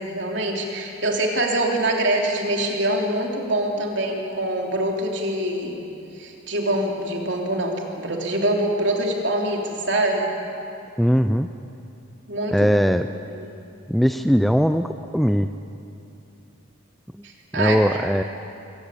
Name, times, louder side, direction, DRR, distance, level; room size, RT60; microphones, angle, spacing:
voice 1, 0.0-5.8 6.2-10.3 12.3-12.8 13.3-13.5 17.2-17.8, right 1 dB, 60° right, 1 dB, 3.3 m, -24 dB
voice 2, 11.0-11.5 12.5-13.1 13.9-15.5 17.5-18.2, equal, ahead, 9 dB, 0.4 m, -20 dB
24.5 x 18.0 x 8.5 m, 2.7 s
head